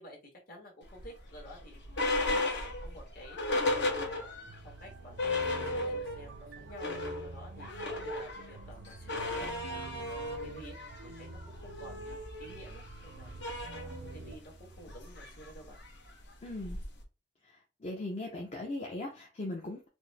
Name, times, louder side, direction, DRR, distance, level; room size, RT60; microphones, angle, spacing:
voice 1, 0.0-4.3 4.6-7.7 8.0-10.8 11.0-15.8, equal, 50° left, 1.5 m, -52 dB
sound 1, 0.9-4.6 4.9-5.0 5.2-6.3 6.6-17.0, left 2 dB, 70° left, 1.1 m, -35 dB
sound 2, 3.6-14.4, right 3 dB, 70° right, 0.4 m, -48 dB
voice 2, 16.4-16.8 17.4-19.9, left 2 dB, 35° left, 0.6 m, -39 dB
4.3 x 2.1 x 3.3 m
head